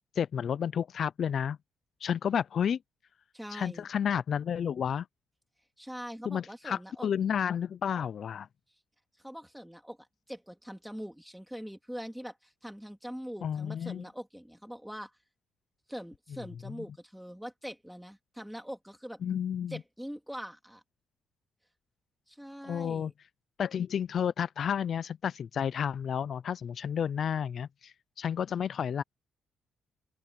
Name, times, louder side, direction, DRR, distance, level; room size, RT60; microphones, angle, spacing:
voice 1, 0.0-1.6 2.0-2.8 3.5-5.1 6.3-8.5 13.4-14.0 16.7-16.8 19.2-19.8 22.6-23.1 23.6-29.0, left 8 dB, 55° left, 0.5 m, -31 dB
voice 2, 3.3-3.9 5.8-7.1 9.2-10.0 10.3-15.1 15.9-19.2 19.7-20.8 22.3-23.1, equal, ahead, 3.7 m, -43 dB
open air
cardioid pair, 90°, 0 cm